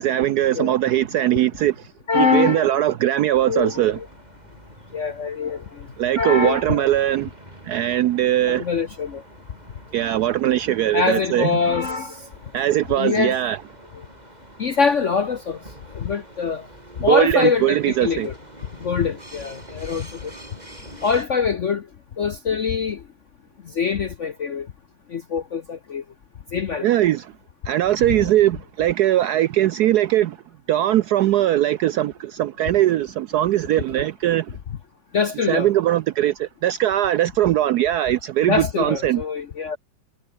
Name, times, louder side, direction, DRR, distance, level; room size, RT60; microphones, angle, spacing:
voice 1, 0.0-4.0 6.0-7.3 7.6-8.7 9.9-11.5 12.5-13.6 17.1-18.3 26.8-27.3 27.7-30.4 30.7-34.6 35.5-39.2, right 13 dB, 85° right, 0.8 m, -20 dB
voice 2, 2.1-2.7 3.5-4.0 4.9-5.9 6.2-6.8 8.5-9.2 10.9-12.2 13.0-13.4 14.6-15.6 15.9-16.7 17.0-18.3 18.8-20.3 21.0-21.9 22.2-23.0 23.7-24.7 25.1-26.0 26.5-26.9 35.1-35.7 38.5-39.8, left 5 dB, 55° left, 0.8 m, -23 dB
sound 1, 3.3-21.3, right 1 dB, 20° right, 6.0 m, -45 dB
omnidirectional pair, 2.3 m